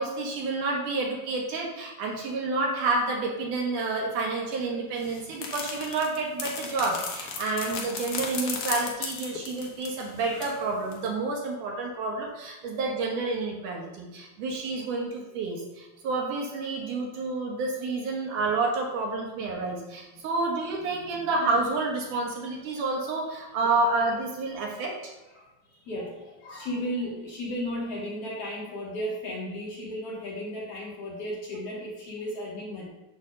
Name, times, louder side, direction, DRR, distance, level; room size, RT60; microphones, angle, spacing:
voice 1, 0.0-24.9, right 3 dB, 65° right, -1 dB, 2.6 m, -29 dB
sound 1, 5.0-10.6 10.9-11.1, left 5 dB, 80° left, 1.3 m, -35 dB
voice 2, 25.9-32.9, equal, 50° left, -5 dB, 2.3 m, -35 dB
8.5 x 3.4 x 6.6 m, 1.0 s
omnidirectional pair, 4.1 m